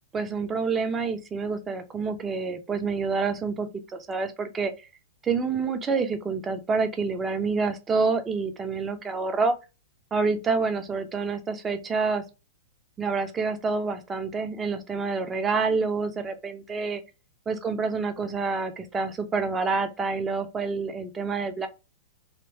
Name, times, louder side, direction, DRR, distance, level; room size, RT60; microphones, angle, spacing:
voice 1, 0.1-4.7 5.2-9.6 10.1-12.2 13.0-17.0 17.5-21.7, right 4 dB, 15° right, 0.6 m, -27 dB
3.0 x 2.9 x 2.8 m
figure-of-eight pair, 100°, 0 cm